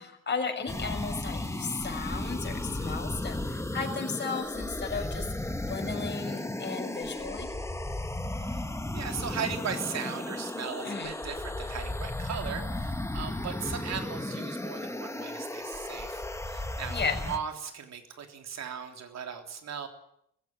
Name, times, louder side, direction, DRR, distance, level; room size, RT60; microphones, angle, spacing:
voice 1, 0.0-5.3 5.7-7.5 10.8-11.1 16.9-17.2, left 5 dB, 30° left, 3 dB, 6.3 m, -35 dB
sound 1, 0.7-17.4, left 1 dB, 10° left, 2.1 m, -35 dB
voice 2, 8.9-19.9, right 7 dB, 50° right, 5 dB, 3.4 m, -38 dB
20.0 x 16.0 x 9.2 m, 0.73 s
hypercardioid pair, 55°, 33 cm